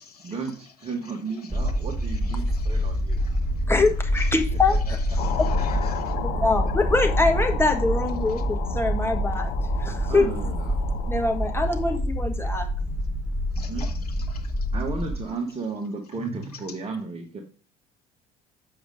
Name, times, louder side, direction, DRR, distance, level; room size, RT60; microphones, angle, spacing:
voice 1, 0.2-3.2 4.7-5.0 10.1-10.7 13.7-13.9 14.7-17.4, right 4 dB, 30° right, 2 dB, 1.4 m, -33 dB
sound 1, 1.5-15.2, equal, 5° right, 1.6 m, -26 dB
voice 2, 2.2-3.6 4.2-4.3 4.9-6.2 13.5-13.9 14.3-14.7, left 5 dB, 80° left, 3 dB, 1.2 m, -46 dB
voice 3, 3.7-5.0 6.4-10.3 11.1-12.7, left 3 dB, 10° left, 4 dB, 1.4 m, -24 dB
sound 2, 5.2-12.0, left 8 dB, 55° left, 0.8 m, -35 dB
7.0 x 5.2 x 5.0 m, 0.39 s
figure-of-eight pair, 60°, 19 cm